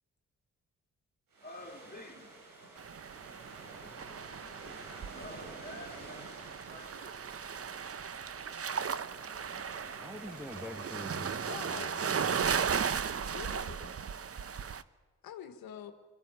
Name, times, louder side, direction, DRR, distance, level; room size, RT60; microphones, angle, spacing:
sound 1, 1.3-11.3, right 2 dB, 75° right, 4.7 m, -51 dB
voice 1, 1.4-2.3 4.1-4.3 5.1-6.9, left 1 dB, 25° left, 2 dB, 3.6 m, -49 dB
sound 2, 2.8-14.8, right 7 dB, 45° right, 0.8 m, -36 dB
voice 2, 10.0-12.5, left 1 dB, 5° right, 3 dB, 1.8 m, -45 dB
voice 3, 11.5-12.7 13.3-13.9 15.2-15.9, left 9 dB, 90° left, 7 dB, 1.3 m, -46 dB
22.0 x 15.0 x 9.1 m, 1.4 s
supercardioid pair, 45°, 34 cm